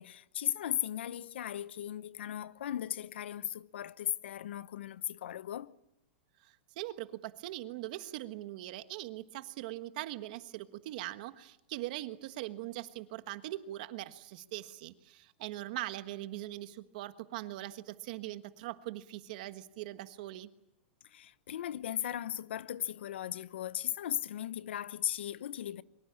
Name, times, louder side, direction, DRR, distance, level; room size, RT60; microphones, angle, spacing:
voice 1, 0.0-5.8 21.0-25.8, left 11 dB, 80° left, 0.9 m, -37 dB
voice 2, 6.4-20.5, right 15 dB, 45° right, 1.4 m, -41 dB
23.5 x 23.0 x 8.8 m
supercardioid pair, 170°, 6 cm